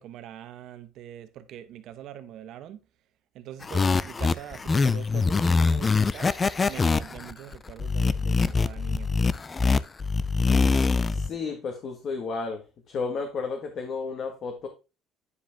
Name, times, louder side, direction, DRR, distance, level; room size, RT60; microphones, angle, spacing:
voice 1, 0.0-2.8 3.3-6.3 6.7-9.1, right 11 dB, 60° right, 1.0 m, -43 dB
sound 1, 3.6-11.3, left 4 dB, 20° left, 0.4 m, -24 dB
voice 2, 11.1-14.7, left 4 dB, 45° left, 1.5 m, -32 dB
9.9 x 5.1 x 3.5 m
cardioid pair, 130°, 0 cm